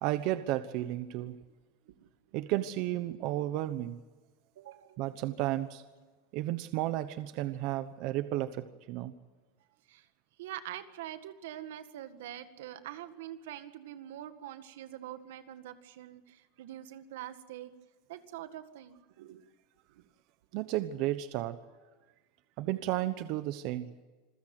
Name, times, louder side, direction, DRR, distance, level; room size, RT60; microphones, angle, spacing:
voice 1, 0.0-1.4 2.3-4.0 5.0-5.8 6.3-9.1 20.5-21.6 22.6-23.9, right 14 dB, 50° right, 11 dB, 1.0 m, -33 dB
voice 2, 4.6-5.0 9.9-10.1 10.4-17.7 18.1-19.4 19.9-20.0, right 12 dB, 90° right, 10 dB, 1.8 m, -44 dB
27.0 x 15.5 x 7.8 m, 1.3 s
supercardioid pair, 165°, 0 cm